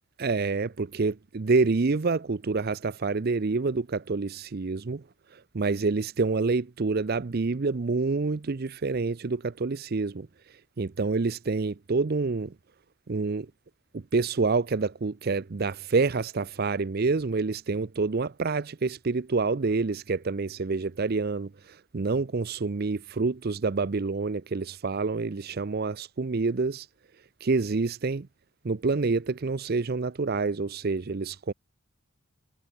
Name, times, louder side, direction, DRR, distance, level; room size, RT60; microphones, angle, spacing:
voice 1, 0.2-5.0 5.3-10.3 10.8-12.5 13.1-13.5 13.9-26.9 27.4-28.3 28.6-31.5, right 4 dB, 45° right, 0.5 m, -27 dB
head